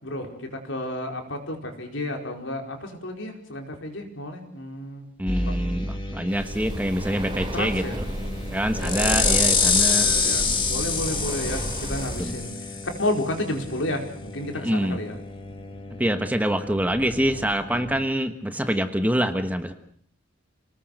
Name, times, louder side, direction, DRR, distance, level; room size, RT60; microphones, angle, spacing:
voice 1, 0.0-5.1 5.5-5.6 7.5-8.0 8.8-9.4 9.9-12.5 12.8-15.2, left 1 dB, 70° left, 3 dB, 4.7 m, -31 dB
voice 2, 5.2-8.1 8.5-10.1 12.2-12.3 14.6-15.0 16.0-19.7, equal, 10° right, 8 dB, 1.3 m, -25 dB
sound 1, 5.3-18.1, left 4 dB, 25° left, 2.7 m, -28 dB
Breathing, 6.3-12.4, right 1 dB, 25° right, 3.3 m, -32 dB
28.0 x 19.5 x 6.6 m, 0.62 s
head